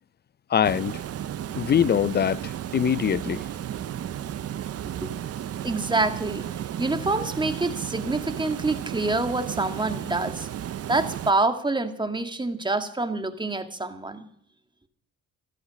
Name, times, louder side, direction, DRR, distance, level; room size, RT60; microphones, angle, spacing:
voice 1, 0.5-1.0 1.6-3.4, left 8 dB, 35° left, 0.5 m, -23 dB
Water, 0.6-11.3, right 10 dB, 55° right, 0.8 m, -34 dB
voice 2, 5.6-6.5 6.8-10.5 10.9-14.2, right 2 dB, 15° right, 1.9 m, -26 dB
15.0 x 13.0 x 6.4 m
cardioid pair, 90°, 30 cm